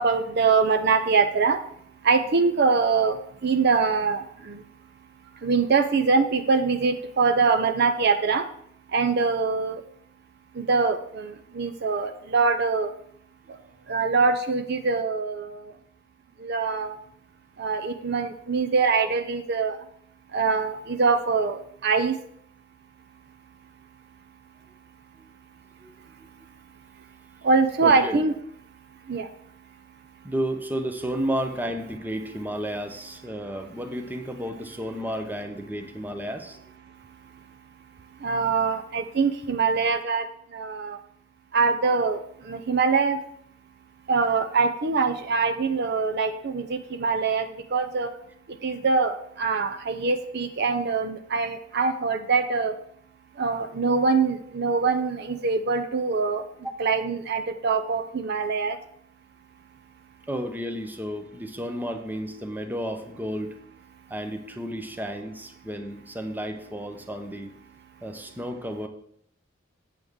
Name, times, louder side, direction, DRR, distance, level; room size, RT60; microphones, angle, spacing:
voice 1, 0.0-1.6 2.0-4.6 5.4-8.5 8.9-9.8 10.5-12.9 13.9-15.7 16.4-17.0 17.6-19.8 20.3-22.2 27.4-28.3 29.1-29.3 38.2-40.3 40.5-41.0 41.5-43.2 44.1-48.1 48.5-52.8 53.4-56.4 56.8-58.8, right 4 dB, 55° right, 7 dB, 0.6 m, -23 dB
voice 2, 27.8-28.2 30.2-36.7 60.3-63.6 64.1-67.5 68.0-68.9, equal, 10° right, 6 dB, 0.7 m, -32 dB
8.1 x 7.8 x 3.6 m, 0.68 s
head